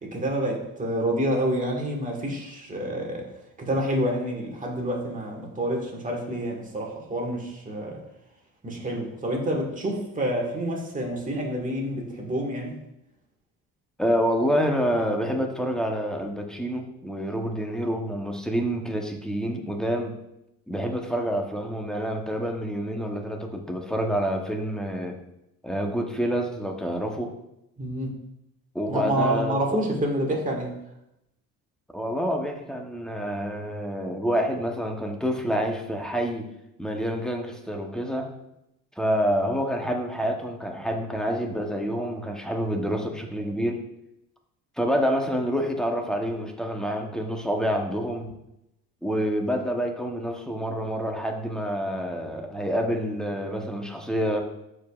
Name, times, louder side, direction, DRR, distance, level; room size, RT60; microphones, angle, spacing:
voice 1, 0.0-3.3 3.6-8.0 8.6-12.7 27.8-28.1 28.9-30.7, right 1 dB, 20° right, 0 dB, 1.7 m, -28 dB
voice 2, 14.0-20.2 20.7-25.2 25.6-27.3 28.7-29.8 31.9-36.5 36.8-38.3 39.0-43.8 44.8-48.3 49.0-54.4, equal, ahead, 2 dB, 0.9 m, -27 dB
12.5 x 4.9 x 2.4 m, 0.84 s
cardioid pair, 120°, 35 cm